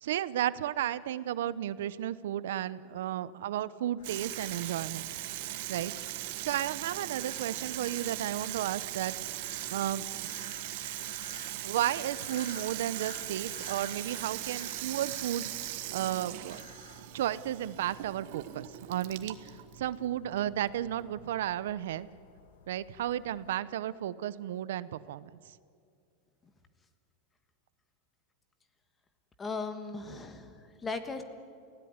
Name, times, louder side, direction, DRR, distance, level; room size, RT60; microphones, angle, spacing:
voice 1, 0.0-5.0 5.7-5.9 6.4-9.1 9.7-10.1 11.6-15.5 15.9-16.6 17.1-19.5 19.8-22.1 22.7-25.3, right 12 dB, 85° right, 16 dB, 0.8 m, -33 dB
sound 1, 4.0-23.5, left 9 dB, 85° left, 1.5 m, -55 dB
Water tap faucet / Sink (filling or washing), 4.0-21.5, right 15 dB, 55° right, 1.5 m, -39 dB
voice 2, 29.4-31.2, left 4 dB, 15° left, 9 dB, 1.5 m, -38 dB
29.5 x 16.5 x 9.6 m, 2.4 s
supercardioid pair, 170°, 0 cm